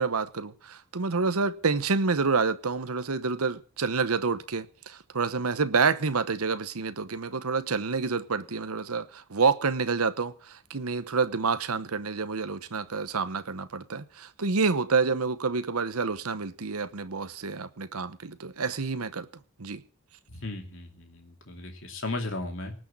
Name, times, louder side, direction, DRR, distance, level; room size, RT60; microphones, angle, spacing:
voice 1, 0.0-19.3 19.6-19.8, right 4 dB, 85° right, 1.0 m, -28 dB
voice 2, 20.3-22.7, left 2 dB, 60° left, 2.8 m, -36 dB
19.0 x 6.4 x 8.5 m
head